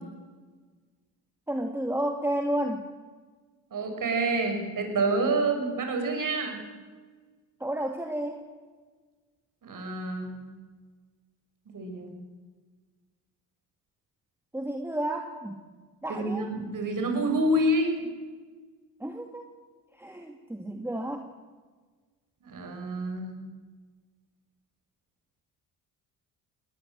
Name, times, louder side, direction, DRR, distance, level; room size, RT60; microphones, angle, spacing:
voice 1, 1.5-2.8 7.6-8.4 14.5-15.6 16.0-16.6 19.0-19.5 20.0-21.3, right 1 dB, 5° right, 4 dB, 2.2 m, -31 dB
voice 2, 3.7-6.6 9.6-10.3 11.7-12.1 16.1-18.0 22.4-23.4, right 2 dB, 55° right, 5 dB, 5.9 m, -28 dB
20.0 x 19.0 x 7.7 m, 1.4 s
supercardioid pair, 70°, 39 cm